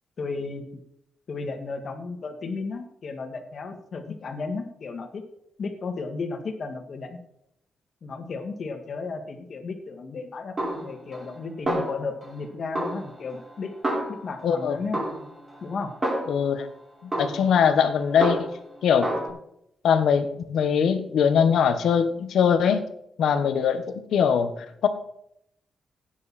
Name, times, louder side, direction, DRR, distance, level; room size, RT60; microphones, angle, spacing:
voice 1, 0.2-0.6 1.3-5.2 5.6-7.2 8.0-10.5 10.8-13.7 14.1-15.0 15.6-15.9, left 4 dB, 55° left, 5 dB, 2.1 m, -34 dB
Snare drum, 10.6-11.4 11.7-12.4 12.8-14.5 14.9-16.6 17.1-18.7 19.0-19.3, right 1 dB, 25° right, 4.7 m, -30 dB
voice 2, 14.4-14.7 16.3-16.7 17.0-18.4 18.8-19.1 19.8-22.8 23.2-24.5 24.8-24.9, left 7 dB, 85° left, 9 dB, 1.3 m, -21 dB
16.0 x 9.6 x 4.3 m, 0.77 s
cardioid pair, 105°, 0 cm